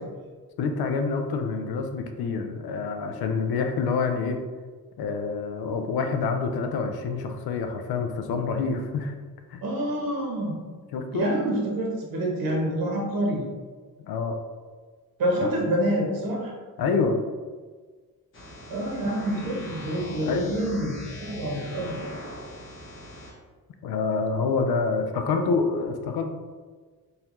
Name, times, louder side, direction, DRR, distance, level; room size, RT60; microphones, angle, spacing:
voice 1, 0.6-4.4 5.0-9.1 9.5-9.6 10.9-11.4 14.0-14.4 15.4-15.5 16.8-17.2 20.2-20.5 23.8-26.3, left 4 dB, 80° left, 6 dB, 0.5 m, -27 dB
voice 2, 9.6-10.6 11.1-13.4 15.2-16.5 18.7-20.9 21.2-22.1, right 1 dB, 70° right, -2 dB, 0.9 m, -27 dB
sound 1, 18.3-23.3, left 1 dB, 35° left, 0.8 m, -40 dB
3.9 x 2.7 x 3.0 m, 1.5 s
wide cardioid pair, 150°, 37 cm